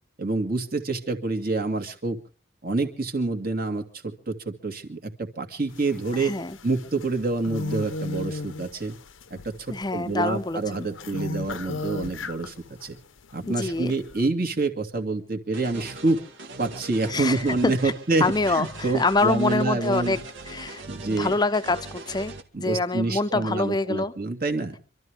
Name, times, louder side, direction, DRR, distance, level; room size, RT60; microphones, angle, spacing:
voice 1, 0.2-2.2 2.6-6.3 6.6-9.0 9.3-12.5 12.8-13.0 13.3-16.2 16.6-20.2 20.9-21.3 22.5-24.8, right 3 dB, 50° right, 2.4 m, -27 dB
sound 1, 5.7-12.9 13.2-14.3, left 3 dB, 85° left, 0.9 m, -36 dB
voice 2, 6.1-6.6 9.7-10.9 13.5-13.9 17.1-17.9 18.2-20.2 20.5-24.1, left 3 dB, 20° left, 0.7 m, -26 dB
sound 2, 15.5-22.4, right 2 dB, 70° right, 1.9 m, -41 dB
26.0 x 13.0 x 3.4 m
head